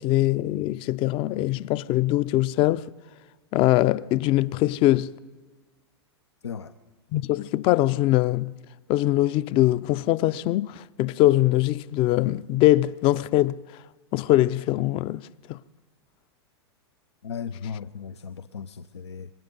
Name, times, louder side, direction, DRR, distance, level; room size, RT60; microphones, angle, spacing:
voice 1, 0.0-2.9 3.5-5.1 7.1-8.5 8.9-13.6 14.1-15.6, left 15 dB, 40° left, 0.6 m, -22 dB
voice 2, 6.4-6.7 17.2-19.3, left 7 dB, 90° left, 0.7 m, -36 dB
25.5 x 20.5 x 5.4 m
hypercardioid pair, 110°, 14 cm